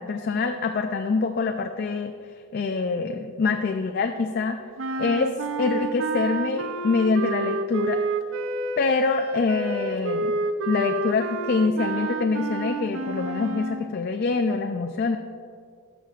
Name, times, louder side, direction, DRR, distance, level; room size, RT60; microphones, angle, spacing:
voice 1, 0.0-2.1 2.5-4.6 5.0-5.3 5.6-8.0 8.8-10.3 10.7-15.2, left 4 dB, 45° left, 6 dB, 0.3 m, -25 dB
sound 1, 4.8-13.9, right 2 dB, 60° right, 0.4 m, -29 dB
13.5 x 7.2 x 2.4 m, 2.2 s
head